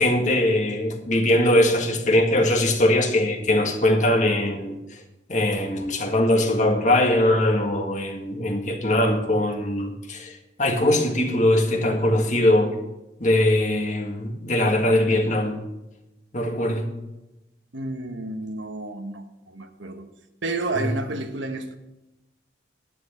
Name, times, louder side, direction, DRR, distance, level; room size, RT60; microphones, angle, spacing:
voice 1, 0.0-4.8 5.3-12.7 13.2-15.6 16.3-16.8 20.8-20.9, left 1 dB, 40° left, 3 dB, 1.8 m, -21 dB
voice 2, 17.7-20.1 20.4-21.8, right 2 dB, 85° right, 7 dB, 1.2 m, -31 dB
11.5 x 10.5 x 4.4 m, 0.97 s
head